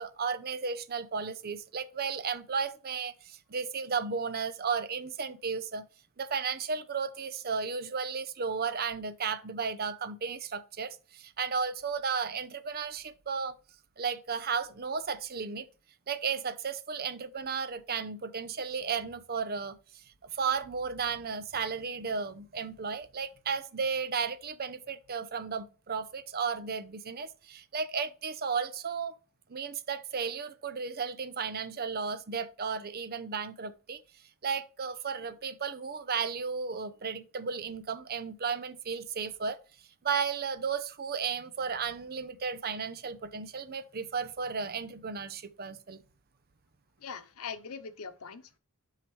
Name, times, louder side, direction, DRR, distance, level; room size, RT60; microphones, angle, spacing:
voice 1, 0.0-5.8 6.2-13.6 14.0-15.7 16.1-29.2 29.5-34.0 34.4-39.6 40.0-46.0, right 5 dB, 45° right, 0.7 m, -34 dB
voice 2, 47.0-48.6, left 6 dB, 80° left, 0.8 m, -42 dB
7.8 x 5.6 x 3.2 m
head